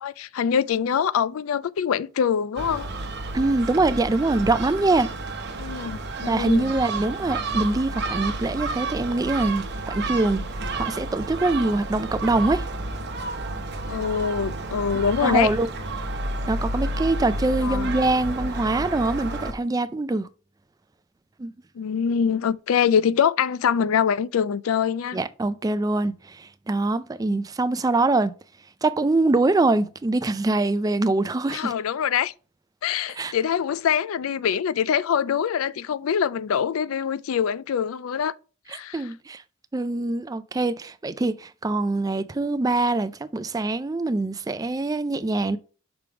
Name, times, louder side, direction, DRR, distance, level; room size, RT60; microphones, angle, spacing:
voice 1, 0.0-2.9 5.6-6.7 13.9-15.5 17.6-17.9 21.8-25.2 31.5-32.3 32.8-38.3 38.7-39.1, left 7 dB, 85° left, 0.4 m, -24 dB
Gull seagull, 2.6-19.5, right 2 dB, 55° right, 0.8 m, -31 dB
voice 2, 3.3-5.1 6.2-10.4 10.7-12.7 15.2-15.7 16.5-20.3 21.4-21.5 25.1-28.3 28.8-31.7 33.2-33.3 38.9-39.4 39.7-45.6, right 2 dB, 15° right, 0.3 m, -24 dB
6.1 x 3.5 x 4.7 m
head